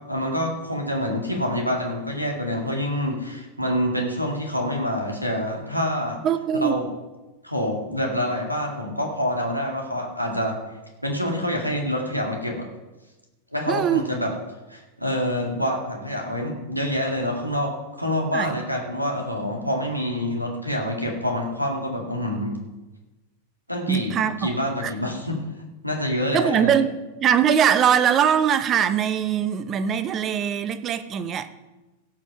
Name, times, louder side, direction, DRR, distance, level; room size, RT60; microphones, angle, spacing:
voice 1, 0.1-6.2 6.6-6.9 7.4-10.6 11.0-12.7 13.5-14.3 14.7-22.6 23.7-25.4 25.8-26.8, equal, 90° right, 1 dB, 2.0 m, -26 dB
voice 2, 6.2-6.8 13.7-14.1 18.3-18.5 23.9-24.5 24.8-24.9 26.3-31.5, right 8 dB, 30° right, 13 dB, 0.7 m, -22 dB
16.5 x 6.2 x 5.6 m, 1.1 s
figure-of-eight pair, 90°, 0 cm